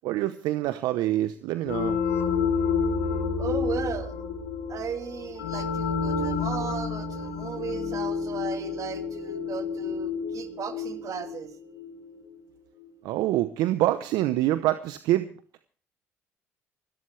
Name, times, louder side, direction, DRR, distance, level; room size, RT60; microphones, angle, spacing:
voice 1, 0.0-2.0 13.0-15.3, right 15 dB, 70° right, 12 dB, 0.8 m, -26 dB
sound 1, 1.6-12.1, left 5 dB, 90° left, 3.3 m, -29 dB
voice 2, 3.4-4.1 4.7-11.5, right 7 dB, 50° right, 7 dB, 2.4 m, -36 dB
25.5 x 13.0 x 3.3 m, 0.42 s
hypercardioid pair, 60°, 7 cm